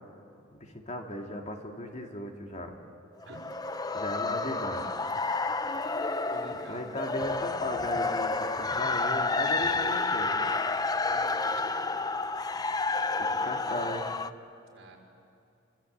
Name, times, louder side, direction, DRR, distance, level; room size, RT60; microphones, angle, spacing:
voice 1, 0.5-2.8 3.9-4.8 6.7-10.3 13.2-14.1, left 1 dB, 35° left, 2 dB, 2.3 m, -36 dB
sound 1, 3.2-14.3, left 3 dB, 20° left, 0.6 m, -30 dB
voice 2, 6.3-7.0 11.1-12.0 14.7-15.0, right 2 dB, 70° right, 0 dB, 4.8 m, -48 dB
27.5 x 25.0 x 8.0 m, 2.6 s
head